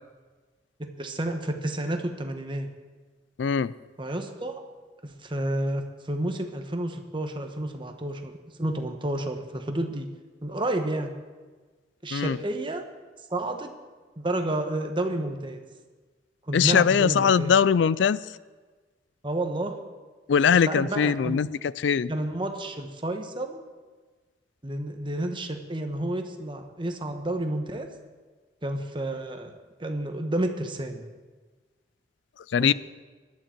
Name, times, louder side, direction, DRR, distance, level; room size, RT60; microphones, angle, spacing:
voice 1, 0.8-2.7 4.0-4.6 5.0-10.1 10.4-11.1 12.0-12.8 13.3-13.7 14.2-15.6 16.5-17.5 19.2-19.8 20.6-21.4 22.1-23.6 24.6-27.9 28.6-31.0 32.6-32.7, right 1 dB, 30° right, 5 dB, 1.2 m, -30 dB
voice 2, 3.4-3.7 12.1-12.4 16.5-18.2 20.3-21.5 21.8-22.1 32.5-32.7, left 7 dB, 85° left, 19 dB, 0.4 m, -21 dB
18.5 x 12.0 x 4.5 m, 1.4 s
head